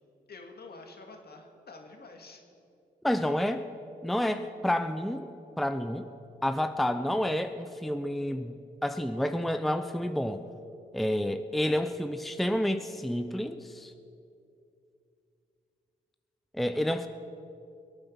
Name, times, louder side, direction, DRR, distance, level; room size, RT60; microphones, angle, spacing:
voice 1, 0.3-2.4 16.9-17.1, left 3 dB, 55° left, 3 dB, 2.2 m, -48 dB
voice 2, 3.0-3.6 4.0-5.3 5.6-6.1 6.4-8.5 8.8-10.4 10.9-13.9 16.5-17.1, left 1 dB, ahead, 9 dB, 0.7 m, -29 dB
22.0 x 8.8 x 5.8 m, 2.7 s
supercardioid pair, 45°, 19 cm